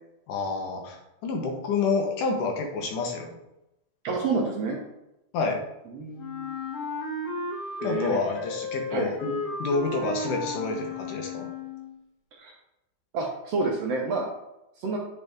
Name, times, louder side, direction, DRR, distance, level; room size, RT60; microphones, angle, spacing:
voice 1, 0.3-1.0 1.2-3.3 5.3-5.6 7.8-11.5, left 4 dB, 85° left, 2 dB, 2.6 m, -28 dB
voice 2, 4.0-4.8 5.9-6.5 7.8-8.2 8.9-9.1 12.3-12.5 13.1-14.3 14.8-15.0, right 3 dB, 70° right, -1 dB, 1.6 m, -29 dB
Wind instrument woodwind instrument, 6.2-12.0, left 3 dB, 60° left, 1.9 m, -34 dB
8.2 x 4.2 x 3.5 m, 0.90 s
omnidirectional pair, 3.6 m